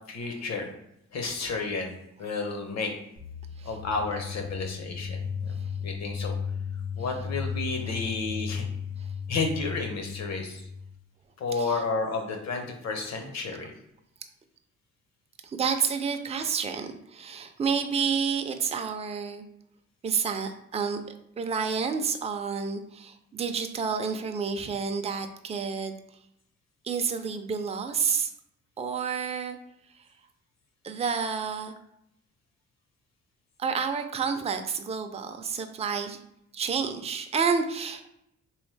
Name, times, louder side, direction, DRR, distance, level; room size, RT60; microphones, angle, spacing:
voice 1, 0.1-0.7 1.1-2.9 3.6-6.4 7.0-8.7 9.3-10.6 11.4-13.7, left 4 dB, 60° left, 4 dB, 0.9 m, -31 dB
sound 1, 3.2-10.9, left 6 dB, 80° left, 1.2 m, -35 dB
voice 2, 15.4-19.4 20.0-21.0 21.4-26.0 26.8-28.3 28.8-29.6 30.8-31.7 33.6-36.2 36.5-38.1, right 6 dB, 20° right, 6 dB, 0.4 m, -29 dB
3.4 x 3.1 x 3.2 m, 0.77 s
cardioid pair, 90°, 30 cm